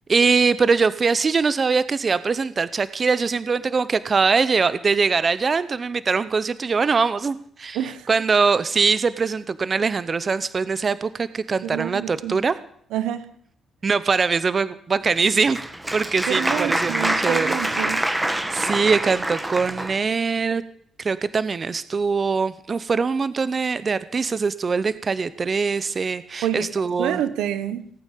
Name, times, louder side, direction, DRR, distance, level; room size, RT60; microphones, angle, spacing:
voice 1, 0.1-7.8 8.1-12.5 13.8-15.6 15.9-17.6 18.5-20.6 21.0-27.2, right 5 dB, 35° right, 15 dB, 0.8 m, -22 dB
voice 2, 7.7-8.1 11.6-12.4 12.9-13.3 16.3-18.1 26.4-26.7 27.0-27.9, right 10 dB, 90° right, 12 dB, 1.3 m, -27 dB
Applause, 15.1-20.0, right 1 dB, 10° right, 1.7 m, -25 dB
18.0 x 9.1 x 8.4 m, 0.64 s
cardioid pair, 90°, 0 cm